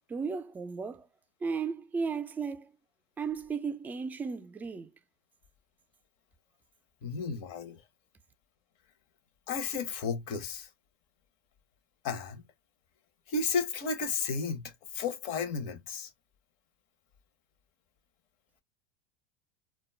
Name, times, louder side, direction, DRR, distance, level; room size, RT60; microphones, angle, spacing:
voice 1, 0.1-1.1 1.4-2.7 3.2-4.9, right 5 dB, 15° right, 0.4 m, -35 dB
voice 2, 7.0-7.8 9.5-10.7 12.0-12.4 13.3-16.1, left 5 dB, 60° left, 0.7 m, -33 dB
2.2 x 2.0 x 3.1 m
hypercardioid pair, 105°, 10 cm